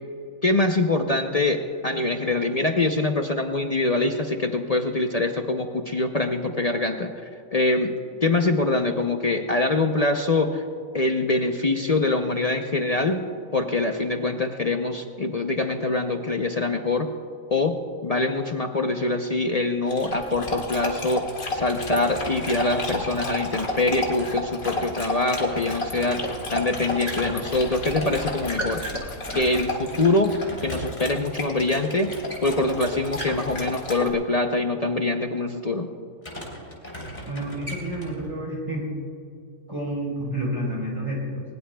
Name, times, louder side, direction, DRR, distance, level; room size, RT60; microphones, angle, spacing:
voice 1, 0.4-7.1 7.5-10.6 10.9-13.2 13.5-17.1 17.5-21.2 21.5-28.8 29.3-35.9, left 2 dB, 45° left, 4 dB, 0.5 m, -24 dB
Dog, 19.9-34.1, left 2 dB, 60° left, 2.4 m, -32 dB
sound 1, 21.1-34.1 36.2-38.3, equal, 30° left, 3.4 m, -38 dB
voice 2, 37.3-38.9 39.7-41.4, right 1 dB, 20° right, -4 dB, 4.4 m, -29 dB
21.0 x 20.0 x 2.3 m, 2.4 s
omnidirectional pair, 1.6 m